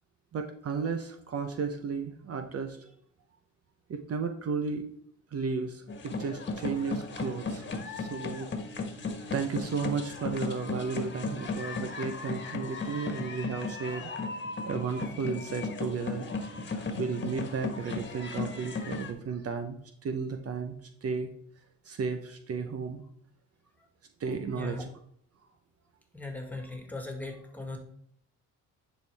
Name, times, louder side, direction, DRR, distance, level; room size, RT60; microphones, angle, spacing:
voice 1, 0.3-2.9 3.9-4.9 5.3-8.5 9.3-14.1 14.7-16.3 16.7-19.8 20.0-20.8 21.0-21.3 21.8-23.0 24.2-24.8, right 5 dB, 50° right, 6 dB, 0.9 m, -34 dB
sound 1, 5.9-19.1, left 3 dB, 35° left, 1.4 m, -36 dB
voice 2, 24.5-24.8 26.1-27.8, left 2 dB, 5° left, 2 dB, 2.0 m, -39 dB
10.5 x 4.6 x 3.4 m, 0.66 s
cardioid pair, 90°, 30 cm